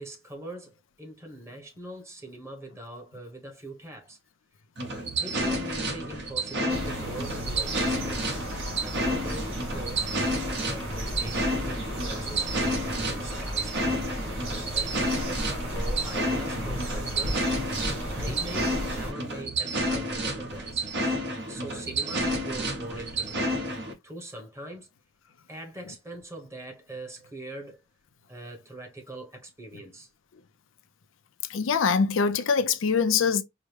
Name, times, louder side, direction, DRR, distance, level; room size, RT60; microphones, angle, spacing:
voice 1, 0.0-4.2 5.2-8.3 8.8-10.1 10.6-14.1 14.3-17.4 18.1-21.2 21.5-23.7 24.0-24.9 25.5-27.8 28.3-30.1, right 1 dB, 15° right, 1.0 m, -42 dB
sound 1, 4.8-23.9, right 1 dB, 60° right, 1.2 m, -30 dB
sound 2, 6.7-19.1, equal, 75° right, 2.3 m, -34 dB
voice 2, 31.5-33.4, left 5 dB, 70° left, 0.5 m, -23 dB
4.7 x 2.1 x 3.2 m
head